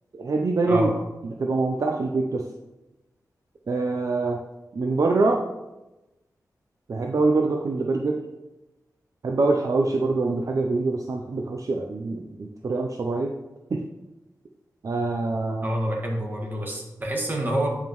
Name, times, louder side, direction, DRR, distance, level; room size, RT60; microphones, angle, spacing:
voice 1, 0.1-0.9 1.4-2.5 3.7-4.4 4.7-5.4 6.9-8.2 9.2-13.3 13.7-13.8 14.8-15.6, right 3 dB, 55° right, 2 dB, 0.6 m, -24 dB
voice 2, 0.7-1.0 15.6-17.7, right 1 dB, 30° right, -1 dB, 1.7 m, -27 dB
8.9 x 5.3 x 3.1 m, 1.0 s
wide cardioid pair, 100°, 7 cm